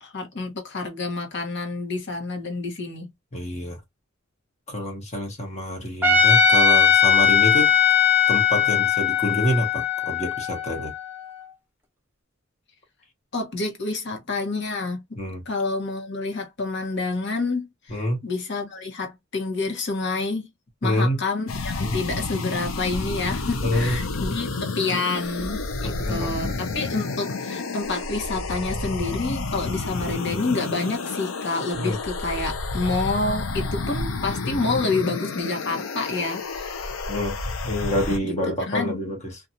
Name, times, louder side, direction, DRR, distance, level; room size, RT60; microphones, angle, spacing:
voice 1, 0.0-3.1 13.3-15.2 15.5-20.5 20.8-36.9 38.2-38.3 38.6-39.0, left 3 dB, 60° left, 1.0 m, -28 dB
voice 2, 3.3-3.8 4.7-7.7 8.3-10.9 15.2-15.4 17.9-18.2 20.8-21.2 21.8-22.0 23.6-24.0 25.8-26.6 31.8-32.0 37.1-37.4 37.6-39.4, equal, 35° left, 1.1 m, -27 dB
Trumpet, 6.0-11.2, left 7 dB, 10° right, 0.9 m, -19 dB
sound 1, 21.5-38.2, left 3 dB, 90° left, 0.6 m, -30 dB
2.6 x 2.4 x 2.7 m
head